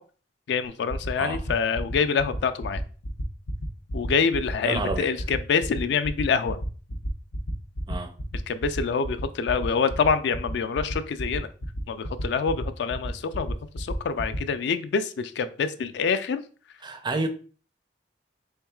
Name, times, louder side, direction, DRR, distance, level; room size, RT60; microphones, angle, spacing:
voice 1, 0.5-2.8 3.9-6.6 8.5-11.5 11.9-16.4, left 5 dB, 65° left, 0.3 m, -26 dB
sound 1, 0.6-14.4, equal, 85° left, 0.7 m, -32 dB
voice 2, 1.2-1.5 4.6-5.2 7.9-8.1 16.8-17.3, right 2 dB, 25° right, 0.4 m, -30 dB
4.5 x 3.5 x 2.3 m
head